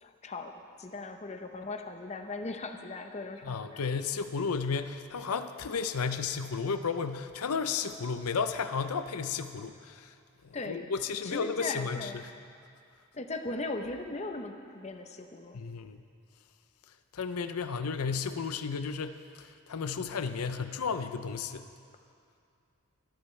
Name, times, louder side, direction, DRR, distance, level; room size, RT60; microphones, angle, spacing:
voice 1, 0.0-3.8 10.5-10.9 11.2-12.2 13.1-15.6, left 3 dB, 30° left, 6 dB, 0.7 m, -38 dB
voice 2, 3.4-10.1 10.4-12.1 15.5-16.0 17.1-21.6, left 5 dB, 85° left, 10 dB, 0.6 m, -33 dB
23.5 x 13.0 x 3.3 m, 2.3 s
head